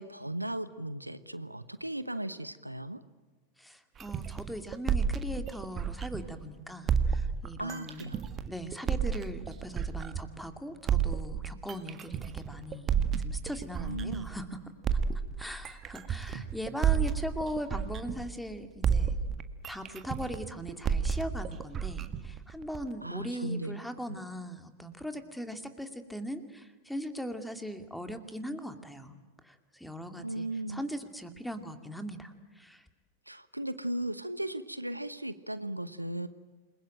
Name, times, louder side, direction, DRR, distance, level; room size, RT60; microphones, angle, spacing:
voice 1, 0.0-3.0 7.6-8.2 13.8-14.3 16.3-16.4 23.0-23.8 24.1-24.2 30.2-30.8 33.3-36.3, right 1 dB, 85° right, 14 dB, 1.1 m, -36 dB
voice 2, 3.6-8.1 8.5-14.6 15.4-19.2 19.7-32.9, equal, ahead, 8 dB, 2.4 m, -40 dB
sound 1, 4.0-6.4 6.9-10.4 10.9-14.4 14.8-18.5 18.8-22.9, right 7 dB, 25° right, 1.7 m, -31 dB
28.5 x 22.0 x 9.0 m, 1.2 s
figure-of-eight pair, 90°, 0 cm